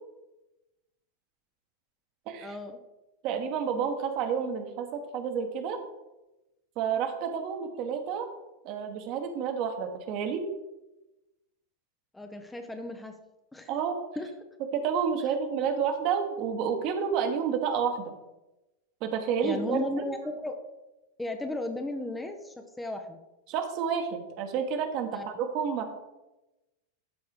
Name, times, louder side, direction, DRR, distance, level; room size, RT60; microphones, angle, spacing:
voice 1, 2.4-2.8 12.1-13.1 13.5-13.7 14.2-14.3 19.4-20.5 21.2-23.2 25.1-25.3, left 2 dB, 10° left, 5 dB, 0.9 m, -35 dB
voice 2, 3.2-5.8 6.8-8.3 8.6-10.4 13.7-14.0 14.7-18.0 19.0-19.8 23.5-25.9, right 7 dB, 40° right, 5 dB, 1.4 m, -30 dB
12.5 x 4.7 x 4.9 m, 1.0 s
figure-of-eight pair, 90°, 0 cm